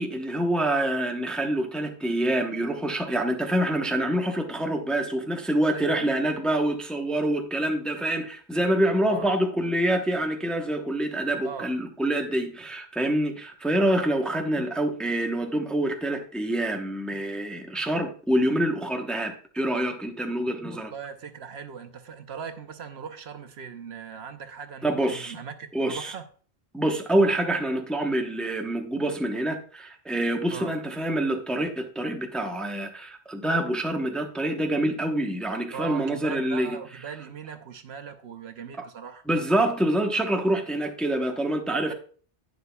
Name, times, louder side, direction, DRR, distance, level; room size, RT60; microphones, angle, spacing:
voice 1, 0.0-20.9 24.8-25.4 25.7-26.1 26.7-36.8 39.3-41.9, right 1 dB, ahead, 3 dB, 0.8 m, -26 dB
voice 2, 5.7-6.1 9.1-9.3 11.4-11.7 20.7-26.2 30.5-30.7 35.7-39.2, right 7 dB, 70° right, 8 dB, 1.0 m, -39 dB
11.0 x 9.5 x 2.3 m, 0.42 s
omnidirectional pair, 1.2 m